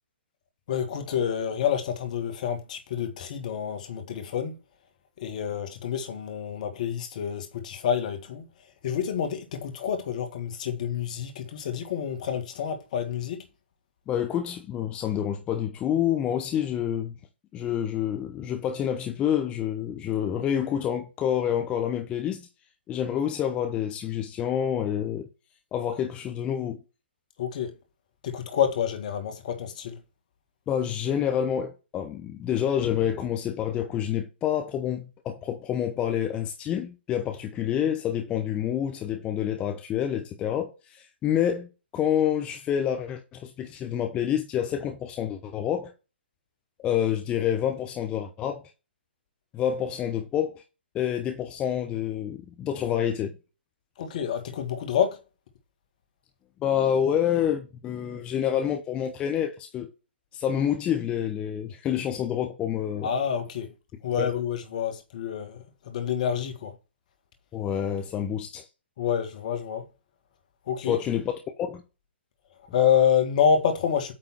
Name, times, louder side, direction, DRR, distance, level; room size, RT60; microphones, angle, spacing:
voice 1, 0.7-4.5 5.2-8.5 8.8-13.4 27.4-27.7 28.2-30.0 54.0-55.2 63.0-63.7 64.0-65.6 65.9-66.7 69.0-69.8 70.7-71.0 72.7-74.1, left 8 dB, 45° left, 1.7 m, -28 dB
voice 2, 14.1-17.1 17.5-22.5 22.9-25.3 25.7-26.8 30.7-45.9 46.8-48.6 49.5-50.6 50.9-53.3 56.6-59.9 60.3-63.1 64.2-64.3 67.5-68.6 70.8-71.8, left 9 dB, 20° left, 0.8 m, -28 dB
8.8 x 3.8 x 4.5 m
figure-of-eight pair, 130°, 6 cm